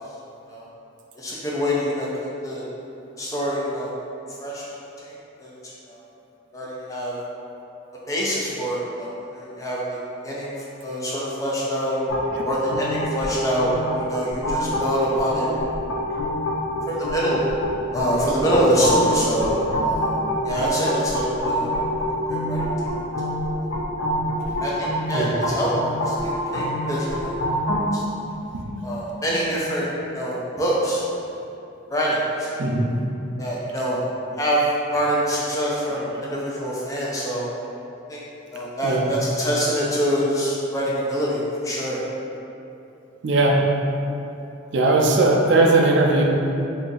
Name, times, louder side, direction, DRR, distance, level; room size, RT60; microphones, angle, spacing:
voice 1, 1.2-2.1 2.4-2.6 3.2-3.9 4.4-4.7 5.0-5.1 5.4-5.5 5.9-6.0 6.5-7.2 8.1-10.0 10.2-10.5 10.8-12.0 12.4-15.5 16.9-17.4 17.9-20.2 20.4-21.7 22.3-22.6 24.6-25.7 26.1-27.3 27.9-28.0 28.8-29.9 30.1-31.0 31.9-32.5 33.4-34.0 34.4-34.6 34.9-37.5 38.1-38.2 38.5-42.0, equal, 15° left, -6 dB, 0.4 m, -25 dB
sound 1, 12.1-27.9, equal, 70° left, 0.5 m, -26 dB
voice 2, 32.6-32.9 35.9-36.1 38.8-39.1 43.2-43.6 44.7-46.2, right 2 dB, 60° right, 0 dB, 0.4 m, -19 dB
2.7 x 2.4 x 3.9 m, 2.8 s
head